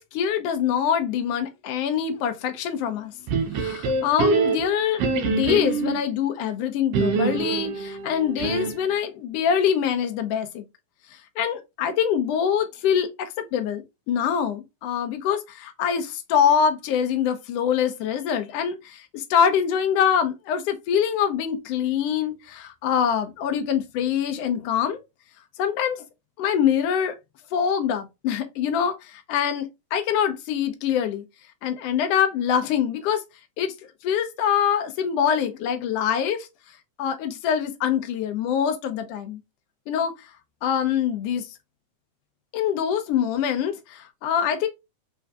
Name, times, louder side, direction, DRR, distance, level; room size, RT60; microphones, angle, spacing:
voice 1, 0.0-3.1 3.5-10.6 11.4-25.0 25.6-26.0 26.4-27.1 27.5-31.2 31.6-33.2 33.6-33.7 34.0-36.5 37.0-39.4 39.9-40.1 40.6-41.5 42.5-44.7, left 8 dB, 70° left, 1.6 m, -24 dB
sound 1, 3.3-6.1 6.9-8.9, right 4 dB, 85° right, 1.3 m, -25 dB
4.5 x 3.7 x 2.4 m
omnidirectional pair, 3.5 m